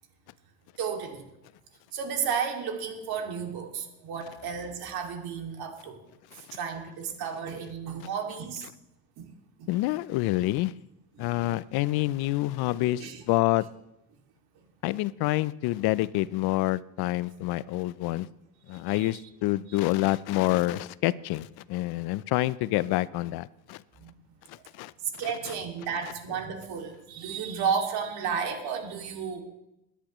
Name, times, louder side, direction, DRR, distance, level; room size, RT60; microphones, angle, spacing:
voice 1, 0.8-1.2 1.9-6.0 6.3-8.7 9.2-9.3 9.6-9.7 11.2-11.3 13.0-13.2 18.9-19.2 19.7-19.8 24.0-24.1 24.5-24.6 25.2-29.4, right 6 dB, 65° right, 3 dB, 2.5 m, -33 dB
voice 2, 9.7-10.7 11.2-13.6 14.8-18.3 18.7-23.8 24.5-24.9, left 17 dB, 65° left, 18 dB, 0.6 m, -27 dB
22.5 x 10.0 x 3.1 m, 0.88 s
supercardioid pair, 100°, 41 cm